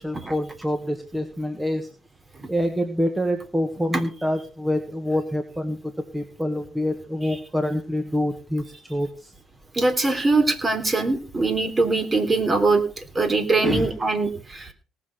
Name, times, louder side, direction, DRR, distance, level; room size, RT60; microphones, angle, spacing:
voice 1, 0.0-1.9 2.5-9.3 13.6-13.9, equal, 10° right, 7 dB, 1.6 m, -26 dB
voice 2, 9.7-12.8 13.1-14.7, right 3 dB, 25° right, 6 dB, 3.2 m, -22 dB
18.5 x 6.9 x 5.8 m, 0.37 s
cardioid pair, 100°, 0 cm